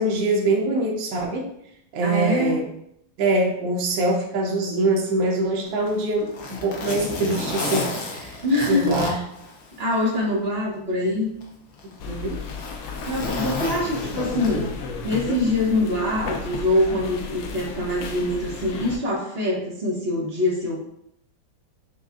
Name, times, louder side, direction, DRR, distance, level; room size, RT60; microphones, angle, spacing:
voice 1, 0.0-1.5 1.9-2.6 3.2-8.4 8.7-9.2 12.0-12.4, right 2 dB, 75° right, -1 dB, 1.5 m, -24 dB
voice 2, 2.0-2.6 8.4-9.2 9.8-11.3 13.1-14.7 15.0-20.8, left 1 dB, 40° right, -5 dB, 1.0 m, -24 dB
Zipper (clothing), 5.7-10.1 10.5-10.6 11.4-14.9 16.0-16.2, left 3 dB, 60° left, 1.1 m, -32 dB
sound 1, 12.0-19.0, left 4 dB, 85° left, 0.7 m, -34 dB
6.3 x 2.3 x 2.4 m, 0.76 s
omnidirectional pair, 2.1 m